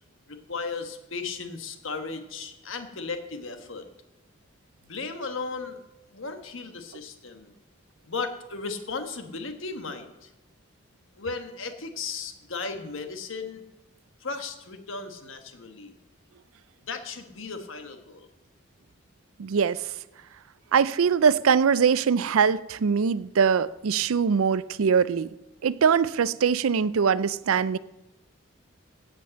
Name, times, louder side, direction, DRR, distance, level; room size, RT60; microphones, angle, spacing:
voice 1, 0.3-3.8 4.9-5.8 6.1-7.5 8.1-10.3 11.2-13.6 14.2-15.9 16.9-18.3, left 4 dB, 65° left, 1.3 m, -35 dB
voice 2, 19.4-19.9 20.7-25.3 25.6-27.8, right 6 dB, 80° right, 0.4 m, -22 dB
15.5 x 5.3 x 7.6 m
head